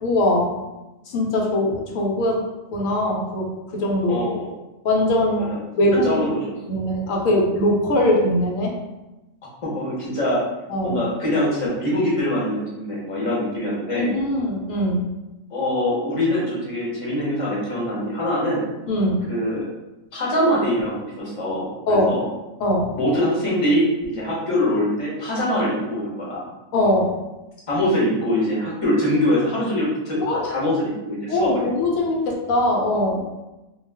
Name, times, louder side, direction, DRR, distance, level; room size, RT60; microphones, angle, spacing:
voice 1, 0.0-0.6 1.1-2.4 2.7-4.2 4.8-5.5 5.8-6.2 6.7-8.8 10.7-11.0 14.0-15.0 18.9-19.2 21.9-22.1 22.6-23.0 26.7-27.2 30.2-30.4 31.3-33.2, left 1 dB, 85° left, -1 dB, 1.0 m, -21 dB
voice 2, 4.1-4.5 5.4-5.6 6.0-6.4 9.6-10.4 10.8-14.1 15.5-18.6 19.3-19.7 20.1-22.2 22.9-26.4 27.7-31.5, left 1 dB, 30° left, -6 dB, 0.8 m, -23 dB
2.3 x 2.3 x 3.3 m, 1.0 s
omnidirectional pair, 1.4 m